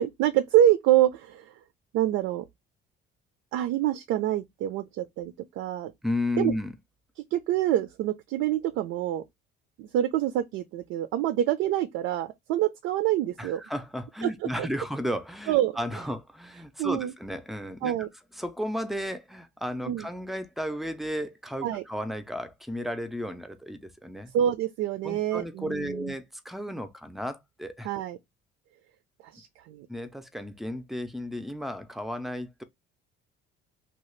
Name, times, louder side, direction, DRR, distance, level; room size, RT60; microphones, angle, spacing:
voice 1, 0.0-1.5 1.9-2.5 3.5-5.9 6.4-6.5 7.3-9.2 9.8-13.6 14.2-14.3 14.6-14.7 15.5-15.7 16.8-17.1 17.8-18.1 19.9-20.1 21.6-21.8 24.3-26.1 27.8-28.2 29.3-29.9, right 12 dB, 75° right, 0.4 m, -26 dB
voice 2, 6.0-6.8 13.4-17.9 18.4-24.3 25.0-27.9 29.9-32.6, left 1 dB, ahead, 0.5 m, -33 dB
2.9 x 2.3 x 3.1 m
cardioid pair, 110°, 21 cm